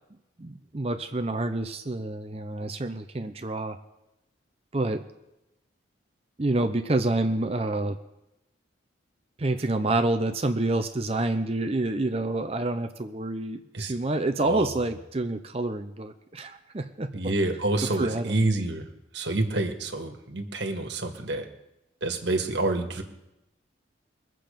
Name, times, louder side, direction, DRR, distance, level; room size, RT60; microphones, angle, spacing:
voice 1, 0.4-3.8 4.7-5.0 6.4-8.0 9.4-17.1 18.0-18.4, right 2 dB, 30° right, 7 dB, 0.6 m, -28 dB
voice 2, 14.4-14.8 17.1-18.9 19.1-21.5 22.0-23.0, right 2 dB, 65° right, 4 dB, 1.6 m, -28 dB
22.0 x 7.6 x 5.2 m, 0.92 s
head